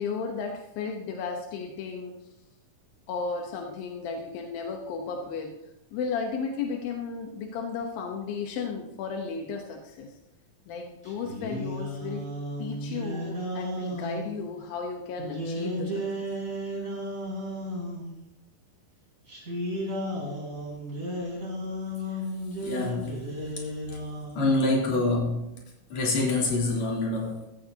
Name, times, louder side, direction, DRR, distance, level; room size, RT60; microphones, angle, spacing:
voice 1, 0.0-2.3 3.1-5.6 5.9-10.2 10.7-12.3 12.6-16.0, left 5 dB, 85° left, 3 dB, 2.9 m, -34 dB
sound 1, 11.1-14.3 15.2-18.1 19.3-24.5, equal, 25° right, 4.0 m, -34 dB
voice 2, 22.6-23.2 24.3-25.5 25.9-27.5, left 2 dB, 50° left, -3 dB, 4.3 m, -26 dB
16.0 x 15.0 x 2.9 m, 0.88 s
omnidirectional pair, 4.1 m